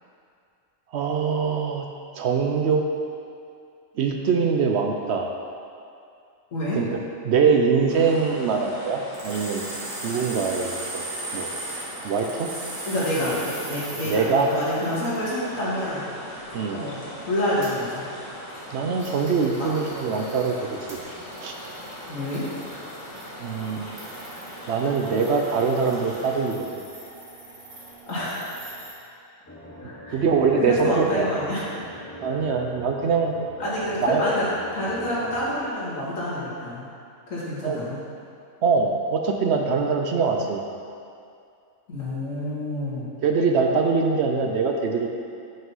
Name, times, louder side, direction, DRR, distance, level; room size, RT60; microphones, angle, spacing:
voice 1, 0.9-1.9 2.2-2.8 4.0-5.3 6.7-9.7 10.0-11.0 11.3-11.5 12.0-12.5 14.0-14.5 16.5-16.8 18.7-20.5 20.9-21.0 21.4-21.5 23.4-23.9 24.7-26.7 30.1-31.3 32.2-33.3 34.0-34.2 37.6-37.8 38.6-40.6 43.2-45.1, right 5 dB, 65° right, 3 dB, 0.8 m, -23 dB
voice 2, 6.5-6.8 12.9-16.1 16.7-18.1 19.6-19.7 22.1-22.4 28.1-28.5 29.8-30.3 30.6-31.6 33.6-34.5 34.7-36.9 37.3-38.0 41.9-43.1, left 1 dB, 85° left, -8 dB, 2.2 m, -28 dB
sound 1, 7.9-26.4, equal, 25° right, 1.8 m, -40 dB
sound 2, 9.1-28.9, right 2 dB, 90° right, 1.9 m, -40 dB
sound 3, 29.5-35.7, equal, 15° left, 0.6 m, -41 dB
5.8 x 5.5 x 5.5 m, 2.4 s
omnidirectional pair, 1.3 m